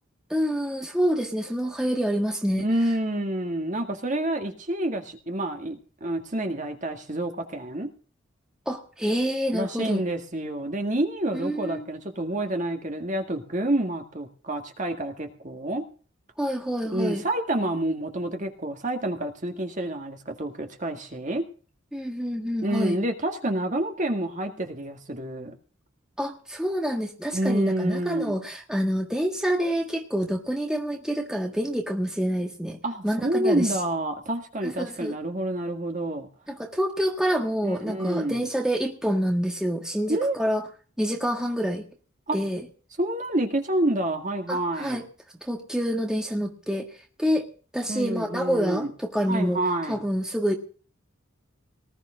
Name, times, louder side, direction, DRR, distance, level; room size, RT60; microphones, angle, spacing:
voice 1, 0.3-2.7 8.6-10.0 11.3-11.9 16.4-17.2 21.9-23.0 26.2-32.8 33.0-33.7 34.6-35.1 36.5-40.6 41.0-41.8 42.3-42.6 44.5-45.0 45.4-46.9 47.2-47.5 47.7-49.6 49.9-50.5, equal, 5° right, 2 dB, 1.6 m, -27 dB
voice 2, 2.6-7.9 9.5-15.8 16.9-21.4 22.6-25.5 27.3-28.4 32.8-36.3 37.6-38.5 40.1-40.4 42.3-42.4 43.0-45.0 47.9-48.9 49.3-50.0, right 1 dB, 40° right, 5 dB, 1.9 m, -28 dB
19.5 x 12.5 x 3.8 m, 0.39 s
head